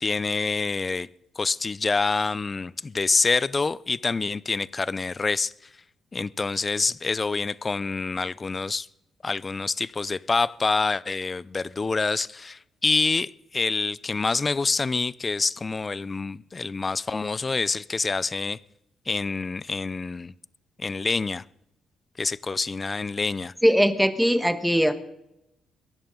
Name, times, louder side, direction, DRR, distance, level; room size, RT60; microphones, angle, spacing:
voice 1, 0.0-1.1 1.4-5.5 6.1-8.9 9.2-18.6 19.1-20.3 20.8-21.4 22.2-23.5, left 4 dB, 30° left, 21 dB, 0.5 m, -26 dB
voice 2, 23.6-24.9, equal, ahead, 10 dB, 1.4 m, -20 dB
22.5 x 11.0 x 3.8 m, 0.84 s
cardioid pair, 90°, 0 cm